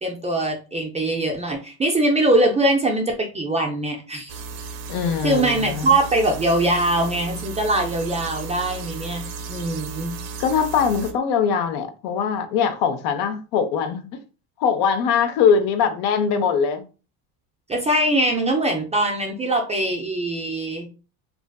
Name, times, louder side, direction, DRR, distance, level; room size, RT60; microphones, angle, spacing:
voice 1, 0.0-4.3 5.2-9.2 9.5-10.1 17.7-20.9, right 1 dB, 15° right, 0.3 m, -22 dB
sound 1, 4.3-11.1, right 4 dB, 75° right, 0.6 m, -34 dB
voice 2, 4.9-5.9 10.4-14.1 14.6-16.8, left 6 dB, 70° left, 0.6 m, -21 dB
2.5 x 2.4 x 2.2 m
supercardioid pair, 95°, 43 cm